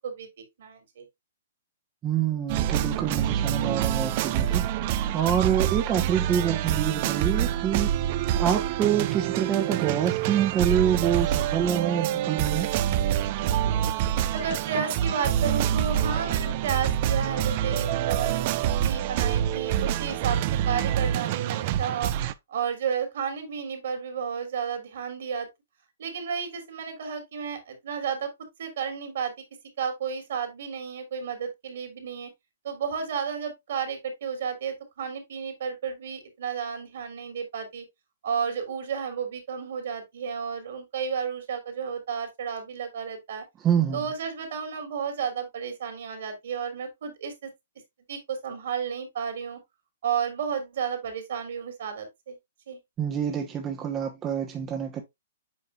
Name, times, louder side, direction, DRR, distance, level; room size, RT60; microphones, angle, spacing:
voice 1, 0.6-1.1 14.3-22.1 22.5-25.5 26.0-28.3 28.6-29.3 29.8-32.3 32.6-37.8 38.2-43.4 43.9-47.5 48.1-49.6 50.0-52.4 52.7-52.8, right 7 dB, 60° right, 3.2 m, -32 dB
voice 2, 2.0-12.7 43.6-44.0 53.0-55.0, right 9 dB, 25° right, 1.2 m, -27 dB
sound 1, 2.5-22.3, right 11 dB, 45° right, 0.6 m, -26 dB
8.5 x 5.4 x 2.4 m
figure-of-eight pair, 120°, 0 cm